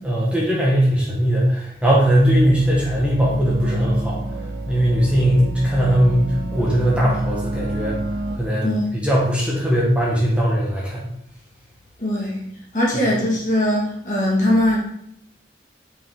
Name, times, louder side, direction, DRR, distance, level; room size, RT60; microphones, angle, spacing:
voice 1, 0.0-4.2 4.7-8.0 8.3-11.1, equal, 5° right, -5 dB, 1.3 m, -19 dB
sound 1, 2.2-8.4, right 1 dB, 90° right, 0.7 m, -29 dB
voice 2, 12.0-12.5 12.7-14.8, left 1 dB, 45° left, -4 dB, 1.8 m, -20 dB
5.8 x 5.3 x 3.7 m, 0.73 s
head